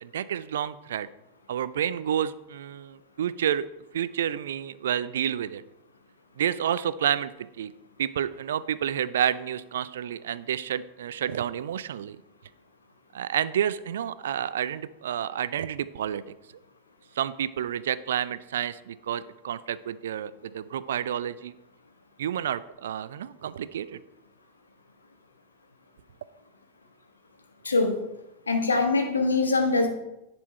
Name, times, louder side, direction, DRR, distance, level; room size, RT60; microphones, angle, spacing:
voice 1, 0.0-1.1 1.5-3.7 3.9-5.6 6.4-7.7 8.0-12.2 13.1-16.2 17.2-21.5 22.2-24.0, right 9 dB, 60° right, 16 dB, 0.3 m, -29 dB
voice 2, 27.6-28.0 28.5-29.9, left 3 dB, 75° left, 4 dB, 1.2 m, -23 dB
10.5 x 4.4 x 4.2 m, 0.94 s
figure-of-eight pair, 90°, 0 cm